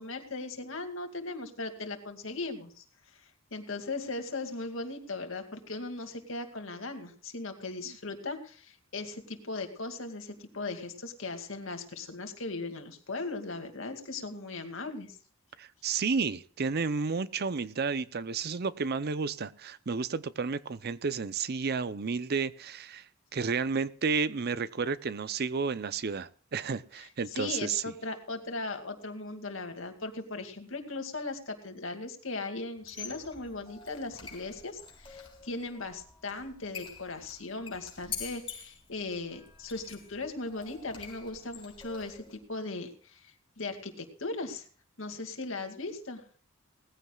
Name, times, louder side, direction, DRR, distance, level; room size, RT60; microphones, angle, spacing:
voice 1, 0.0-2.8 3.1-15.2 27.0-44.7 45.0-46.2, left 3 dB, 70° left, 2.3 m, -38 dB
voice 2, 15.6-27.8, right 5 dB, 50° right, 0.6 m, -32 dB
Squeak, 32.8-42.4, left 6 dB, 25° left, 3.7 m, -46 dB
19.5 x 15.0 x 2.4 m
head